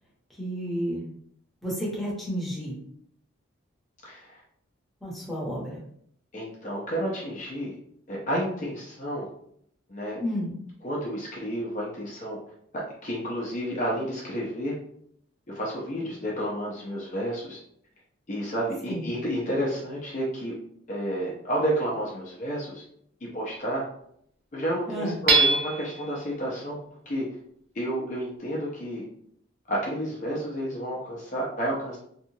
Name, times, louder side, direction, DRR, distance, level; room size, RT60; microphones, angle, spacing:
voice 1, 0.4-1.1 1.6-2.7 5.0-5.8 10.2-10.6 18.9-19.2 24.9-25.2, equal, ahead, -6 dB, 0.8 m, -31 dB
voice 2, 4.0-4.4 6.3-7.8 8.1-9.3 9.9-10.2 10.8-12.4 13.0-14.7 15.5-17.6 18.3-20.5 20.9-22.8 23.3-23.8 24.5-27.3 27.7-29.0 29.7-32.0, equal, 40° left, -4 dB, 0.5 m, -30 dB
Hammer / Chink clink, 25.3-26.1, right 4 dB, 60° right, 0.5 m, -22 dB
2.7 x 2.3 x 2.7 m, 0.69 s
head